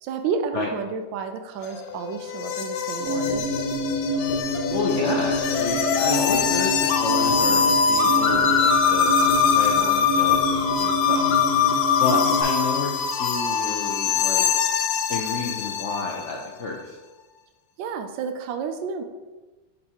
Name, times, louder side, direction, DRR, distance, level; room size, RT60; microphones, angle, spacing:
voice 1, 0.0-3.5 17.8-19.0, right 6 dB, 85° right, 6 dB, 1.3 m, -30 dB
sound 1, 1.6-16.2, left 6 dB, 90° left, 1.3 m, -23 dB
sound 2, 3.0-12.4, equal, 45° right, 2.1 m, -27 dB
voice 2, 4.7-9.2 9.5-11.2 12.0-14.5 15.1-17.0, left 4 dB, 70° left, 0 dB, 0.7 m, -30 dB
10.0 x 4.1 x 2.9 m, 1.2 s
omnidirectional pair, 2.0 m